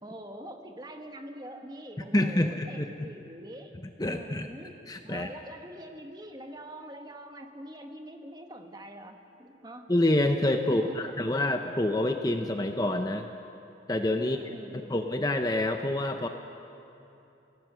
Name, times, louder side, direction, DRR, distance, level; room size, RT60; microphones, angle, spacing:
voice 1, 0.0-3.8 4.0-9.9 10.6-11.3 14.2-15.3, right 1 dB, 20° right, 5 dB, 1.4 m, -44 dB
voice 2, 2.1-3.1 4.0-4.5 4.9-5.3 9.9-13.3 13.9-14.4 14.7-16.3, left 1 dB, 20° left, 5 dB, 0.8 m, -27 dB
29.5 x 18.5 x 6.3 m, 2.8 s
head